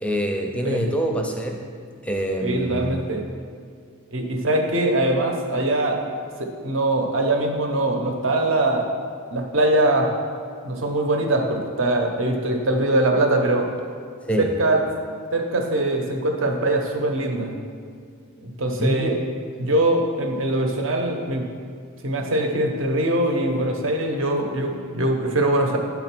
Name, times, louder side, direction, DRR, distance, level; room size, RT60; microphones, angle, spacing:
voice 1, 0.0-1.6 2.0-3.0 14.3-14.5 18.8-19.3, equal, 5° left, 2 dB, 0.5 m, -25 dB
voice 2, 2.4-3.2 4.1-6.0 6.4-8.9 9.3-10.1 10.6-13.7 14.4-14.8 15.3-17.6 18.4-19.2 19.6-21.5 22.0-25.8, right 1 dB, 60° right, 3 dB, 0.9 m, -22 dB
9.3 x 3.8 x 6.0 m, 2.2 s
head